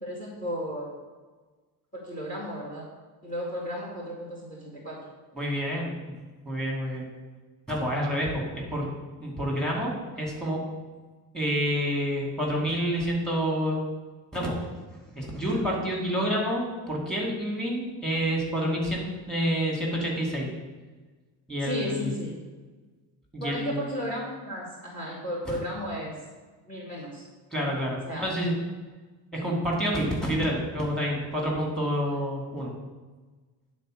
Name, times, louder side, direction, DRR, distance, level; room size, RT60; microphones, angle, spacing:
voice 1, 0.0-0.9 1.9-2.8 3.2-5.0 21.6-22.3 23.4-26.1 26.7-27.2 27.6-27.7 28.1-28.3 32.5-32.6, equal, 20° left, -3 dB, 2.1 m, -34 dB
voice 2, 5.3-6.1 6.4-7.1 7.7-8.9 9.2-10.6 11.3-13.8 14.3-14.6 15.1-19.0 19.3-20.5 21.5-22.1 23.3-23.8 25.5-25.6 27.5-28.5 29.3-32.7, equal, ahead, -3 dB, 2.5 m, -28 dB
9.8 x 4.4 x 6.4 m, 1.3 s
cardioid pair, 120°, 39 cm